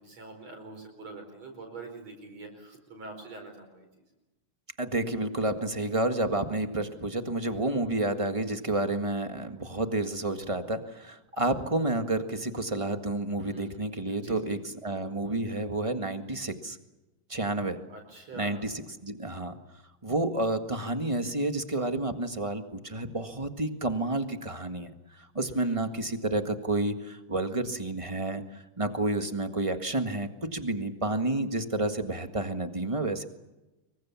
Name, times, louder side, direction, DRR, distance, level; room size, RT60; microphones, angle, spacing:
voice 1, 0.0-3.9 13.4-13.8 14.1-14.6 17.9-18.6 25.5-25.9, right 3 dB, 60° right, 3 dB, 6.1 m, -45 dB
voice 2, 4.8-16.8 17.3-17.8 18.3-18.7 19.0-19.6 20.0-33.2, right 2 dB, 20° right, 7 dB, 1.0 m, -30 dB
27.0 x 23.5 x 7.2 m, 1.0 s
omnidirectional pair, 3.4 m